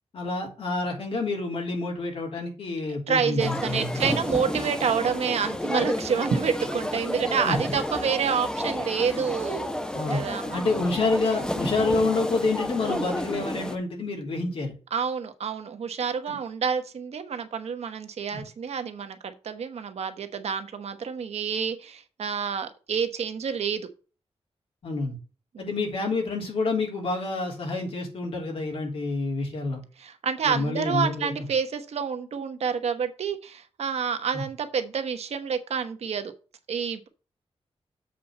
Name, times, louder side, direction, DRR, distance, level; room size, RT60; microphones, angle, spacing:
voice 1, 0.1-4.1 7.4-7.6 9.9-10.2 10.5-14.7 16.3-16.4 24.8-25.2 25.6-29.8 30.4-31.5 34.3-34.4, left 3 dB, 60° left, 1 dB, 3.1 m, -28 dB
voice 2, 3.1-9.7 10.1-10.6 14.9-23.9 25.5-25.7 30.0-36.3 36.7-37.1, right 6 dB, 80° right, 7 dB, 1.2 m, -28 dB
sound 1, 3.4-13.8, left 1 dB, 5° left, 0.8 m, -31 dB
7.5 x 4.2 x 6.7 m, 0.35 s
wide cardioid pair, 180°, 11 cm